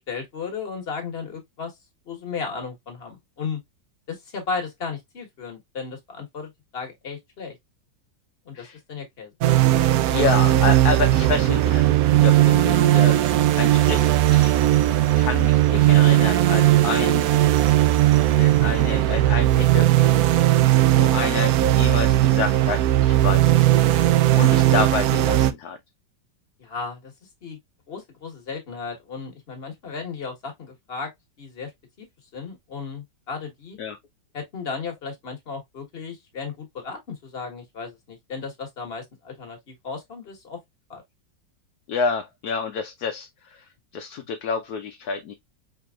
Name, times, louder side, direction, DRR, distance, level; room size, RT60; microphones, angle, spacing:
voice 1, 0.1-1.7 2.1-3.6 4.1-7.5 8.4-9.3 24.4-24.5 26.6-27.1 27.4-27.6 27.9-31.1 31.4-31.7 32.0-32.1 32.3-33.8 34.3-40.6 40.9-41.0, left 5 dB, 35° left, 1.5 m, -35 dB
sound 1, 9.4-25.5, right 14 dB, 75° right, 0.8 m, -18 dB
voice 2, 10.1-13.2 13.6-14.6 15.2-17.3 18.4-20.2 20.9-25.8 33.8-34.0 41.9-43.6 43.9-45.3, left 5 dB, 70° left, 1.0 m, -29 dB
4.5 x 3.5 x 2.3 m
omnidirectional pair, 2.0 m